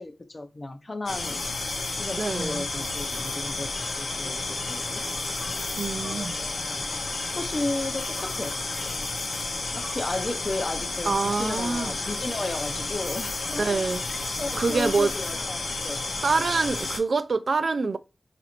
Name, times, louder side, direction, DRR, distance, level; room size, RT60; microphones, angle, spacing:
voice 1, 0.0-1.5 1.9-5.0 6.0-8.6 8.9-9.2 9.7-13.9 14.4-16.1, left 2 dB, 35° left, 0.5 m, -34 dB
sound 1, 1.1-17.0, left 3 dB, 90° left, 0.7 m, -31 dB
voice 2, 2.2-2.7 5.8-6.3 11.1-11.9 13.6-14.0 14.6-15.1 16.2-18.0, right 4 dB, 65° right, 0.3 m, -25 dB
sound 2, 5.3-10.4 10.7-16.2, left 2 dB, 65° left, 1.0 m, -51 dB
4.1 x 2.5 x 2.9 m
wide cardioid pair, 100°, 0 cm